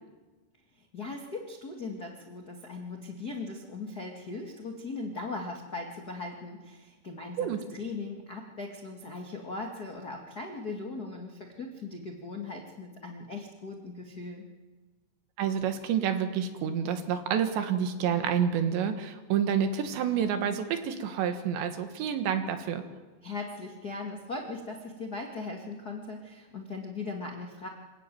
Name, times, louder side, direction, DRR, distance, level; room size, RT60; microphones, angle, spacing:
voice 1, 0.7-14.4 23.2-27.7, left 3 dB, 70° left, 1 dB, 0.9 m, -39 dB
voice 2, 15.4-22.8, right 8 dB, 75° right, 7 dB, 3.8 m, -28 dB
26.0 x 15.0 x 9.3 m, 1.3 s
omnidirectional pair, 5.2 m